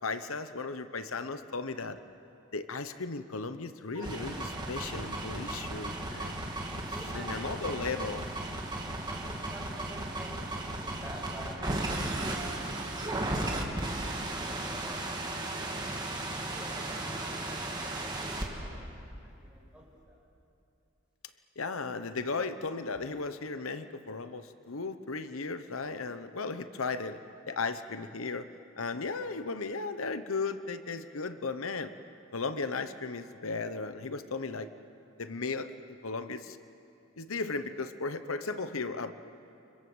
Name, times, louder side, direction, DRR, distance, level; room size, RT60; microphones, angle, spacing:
voice 1, 0.0-2.0 2.5-6.4 7.1-8.3 21.6-27.2 27.5-28.5 28.8-31.9 32.3-34.7 35.2-36.6 37.2-39.1, left 4 dB, 85° left, 10 dB, 1.0 m, -36 dB
sound 1, 3.9-18.5, right 2 dB, 20° right, 2.8 m, -35 dB
voice 2, 6.9-7.7 8.9-13.7 14.4-15.7 16.3-18.9 19.2-20.2, right 1 dB, 5° right, -5 dB, 7.3 m, -49 dB
29.5 x 25.5 x 7.9 m, 2.7 s
head